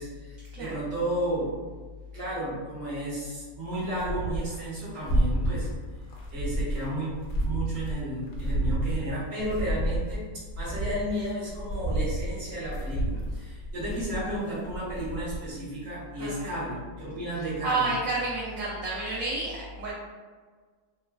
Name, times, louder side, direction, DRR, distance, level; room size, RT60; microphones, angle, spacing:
voice 1, 0.0-1.5 2.1-5.7 6.3-10.3 10.6-17.9, right 1 dB, 50° right, -8 dB, 1.3 m, -33 dB
sound 1, 3.7-4.6 4.9-5.8 6.1-8.0 8.3-10.2 10.5-15.5, right 1 dB, 75° left, 1.1 m, -30 dB
voice 2, 16.2-16.5 17.4-19.9, right 3 dB, 70° right, -6 dB, 0.9 m, -30 dB
3.0 x 2.1 x 2.3 m, 1.5 s
omnidirectional pair, 1.6 m